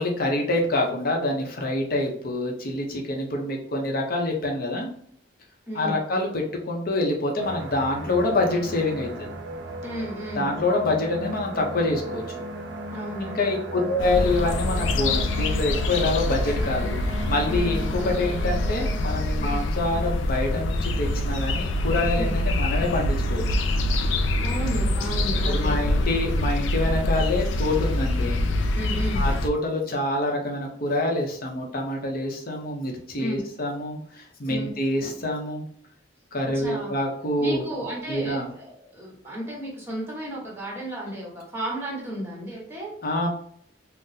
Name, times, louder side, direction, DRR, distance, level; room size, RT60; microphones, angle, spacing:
voice 1, 0.0-4.9 5.7-9.3 10.3-12.2 13.2-23.4 25.5-28.4 29.1-35.6 36.3-37.6 38.1-38.5 43.0-43.3, left 2 dB, 50° left, 1 dB, 0.7 m, -26 dB
voice 2, 5.7-6.0 9.8-10.5 12.9-13.9 17.5-17.7 19.4-19.6 22.1-22.3 24.4-25.8 28.7-29.2 33.2-33.4 34.5-34.7 36.5-36.9 37.4-42.9, right 1 dB, 15° right, -3 dB, 1.2 m, -34 dB
sound 1, 7.4-19.2, right 1 dB, 65° right, 0.5 m, -36 dB
sound 2, 14.0-29.5, left 1 dB, 75° left, 0.3 m, -25 dB
3.8 x 2.0 x 2.6 m, 0.64 s
head